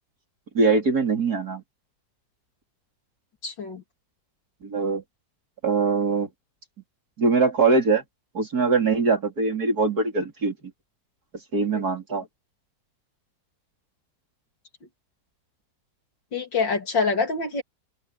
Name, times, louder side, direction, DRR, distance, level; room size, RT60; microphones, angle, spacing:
voice 1, 0.5-1.6 4.6-5.0 5.6-6.3 7.2-8.0 8.3-10.5 11.5-12.2, right 4 dB, 55° right, 4.4 m, -22 dB
voice 2, 3.4-3.8 11.7-11.9 16.3-17.6, left 4 dB, 80° left, 3.8 m, -26 dB
open air
omnidirectional pair, 2.0 m